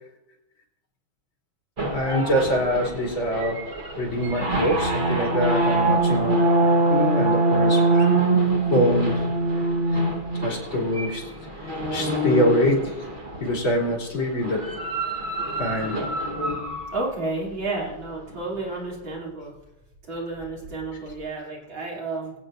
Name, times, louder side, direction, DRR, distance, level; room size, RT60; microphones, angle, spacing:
sound 1, 1.8-13.6 14.4-17.1, right 2 dB, 30° right, 1.1 m, -24 dB
voice 1, 1.9-3.7 4.0-6.5 6.9-8.1 8.7-9.3 9.9-10.0 10.4-11.3 11.7-13.1 13.4-14.7 15.6-16.1, equal, 70° left, -2 dB, 3.7 m, -24 dB
voice 2, 16.9-19.5 20.1-22.3, right 3 dB, 70° right, -4 dB, 3.6 m, -31 dB
23.0 x 8.7 x 2.5 m, 0.89 s
omnidirectional pair, 2.3 m